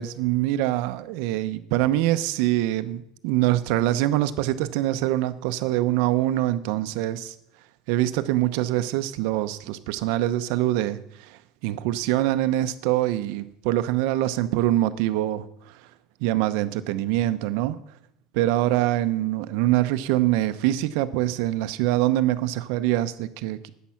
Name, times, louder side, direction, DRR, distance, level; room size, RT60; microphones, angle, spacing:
voice 1, 0.0-7.3 7.9-15.8 16.2-17.8 18.3-23.7, right 14 dB, 70° right, 12 dB, 0.8 m, -24 dB
13.5 x 9.4 x 5.8 m, 0.78 s
cardioid pair, 155°, 0 cm